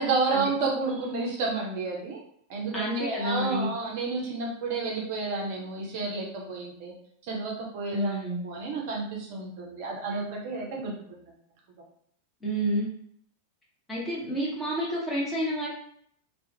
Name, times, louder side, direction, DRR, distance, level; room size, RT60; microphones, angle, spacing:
voice 1, 0.0-2.2 2.5-6.9 7.2-8.2 8.4-10.9, right 3 dB, 50° right, -2 dB, 0.5 m, -30 dB
voice 2, 2.7-3.7 7.9-8.4 12.4-12.9 13.9-15.7, equal, 10° left, -5 dB, 1.0 m, -29 dB
2.4 x 2.2 x 2.7 m, 0.65 s
figure-of-eight pair, 90°, 0 cm